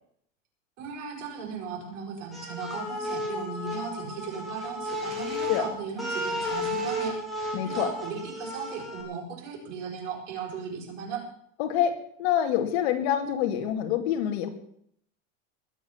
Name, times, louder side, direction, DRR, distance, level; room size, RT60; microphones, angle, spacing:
voice 1, 0.8-7.2 7.6-11.2, right 6 dB, 65° right, 0 dB, 7.5 m, -37 dB
sound 1, 2.3-9.0, left 1 dB, ahead, 3.7 m, -33 dB
voice 2, 7.5-7.9 11.6-11.9 12.2-14.5, left 10 dB, 50° left, 6 dB, 2.4 m, -26 dB
20.5 x 7.7 x 7.4 m, 0.67 s
supercardioid pair, 175°, 40 cm